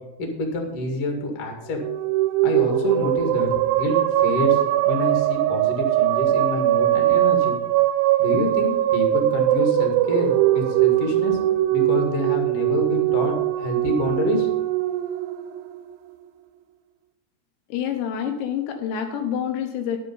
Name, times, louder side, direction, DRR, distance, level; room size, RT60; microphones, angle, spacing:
voice 1, 0.2-1.8 2.4-4.6 4.8-7.6 8.2-11.4 11.7-14.5, left 2 dB, 45° left, 1 dB, 2.1 m, -27 dB
sound 1, 1.7-16.2, right 14 dB, 85° right, 3.0 m, -21 dB
voice 2, 17.7-20.0, left 8 dB, 80° left, 4 dB, 2.9 m, -27 dB
10.5 x 7.6 x 5.5 m, 0.98 s
omnidirectional pair, 5.3 m